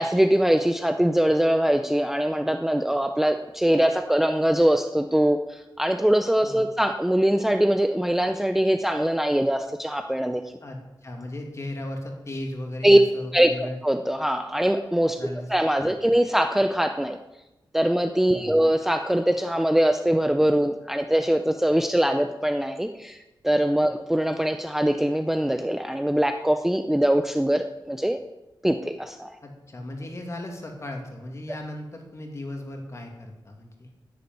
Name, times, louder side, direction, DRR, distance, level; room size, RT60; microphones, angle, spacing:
voice 1, 0.0-10.4 12.8-13.0 13.3-13.5 13.8-15.2 15.5-17.2 17.7-23.2 23.4-28.2 28.6-29.3, right 1 dB, 5° right, 7 dB, 0.5 m, -22 dB
voice 2, 10.6-13.8 15.2-15.5 15.8-15.9 18.3-18.6 29.4-33.9, left 1 dB, 35° left, 2 dB, 2.5 m, -36 dB
10.5 x 8.4 x 9.3 m, 0.99 s
wide cardioid pair, 165°, 8 cm